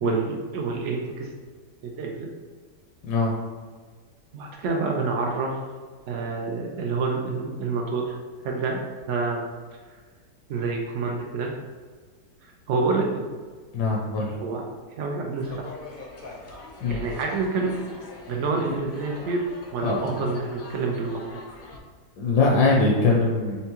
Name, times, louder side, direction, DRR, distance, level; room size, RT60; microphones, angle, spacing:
voice 1, 0.0-1.3 1.8-2.3 4.3-5.6 6.1-8.1 8.4-8.8 9.1-9.4 10.5-11.5 12.7-13.3 14.4-14.7 15.0-15.7 16.9-17.7 18.3-19.4 19.7-21.2, right 4 dB, 75° right, 0 dB, 0.6 m, -27 dB
voice 2, 3.0-3.4 13.7-14.4 16.8-17.0 19.2-19.3 19.8-20.2 22.2-23.6, left 3 dB, 75° left, -3 dB, 1.2 m, -22 dB
sound 1, 15.4-21.8, left 2 dB, 50° left, 0.6 m, -43 dB
4.5 x 3.4 x 2.9 m, 1.5 s
omnidirectional pair, 1.8 m